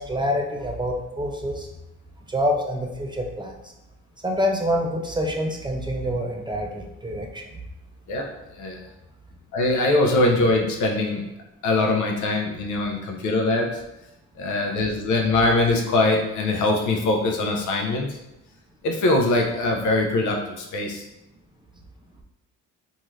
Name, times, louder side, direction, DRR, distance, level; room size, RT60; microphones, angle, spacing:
voice 1, 0.0-1.7 2.3-3.6 4.2-7.5, equal, 15° right, 1 dB, 0.4 m, -26 dB
voice 2, 9.5-11.3 11.6-13.8 14.4-18.2 18.8-21.1, left 2 dB, 75° left, 1 dB, 0.6 m, -22 dB
2.6 x 2.4 x 3.1 m, 0.91 s
cardioid pair, 90°, 30 cm